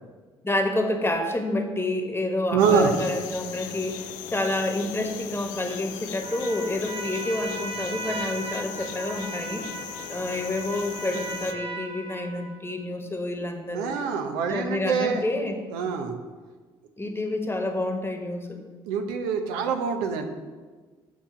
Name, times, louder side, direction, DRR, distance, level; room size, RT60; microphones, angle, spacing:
voice 1, 0.4-9.7 10.1-13.9 14.5-15.6 17.0-18.6, left 2 dB, 15° left, 4 dB, 1.3 m, -28 dB
voice 2, 2.5-2.9 13.7-15.2 15.7-16.1 18.9-20.3, right 6 dB, 75° right, 6 dB, 0.8 m, -25 dB
sound 1, 2.6-11.5, left 10 dB, 70° left, 0.5 m, -39 dB
Trumpet, 6.2-12.7, right 2 dB, 40° right, 1.1 m, -37 dB
8.6 x 4.2 x 5.7 m, 1.4 s
hypercardioid pair, 50°, 14 cm